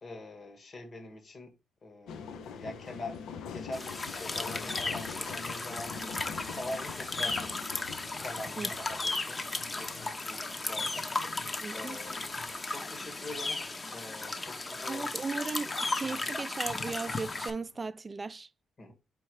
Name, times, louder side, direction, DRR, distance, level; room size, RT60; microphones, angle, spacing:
voice 1, 0.0-1.5 1.8-3.2 3.5-7.8 8.2-9.4 9.7-11.1 11.7-12.2 12.7-13.6 13.9-15.2 16.0-16.2 18.8-18.9, left 2 dB, 40° left, 1.5 m, -44 dB
sound 1, 2.1-16.1 16.5-17.9, left 6 dB, 80° left, 0.7 m, -46 dB
sound 2, 3.7-17.5, left 3 dB, 25° left, 0.9 m, -35 dB
voice 2, 11.6-12.0 14.9-18.5, right 4 dB, 25° right, 0.4 m, -37 dB
4.6 x 4.4 x 4.7 m
cardioid pair, 90°, 0 cm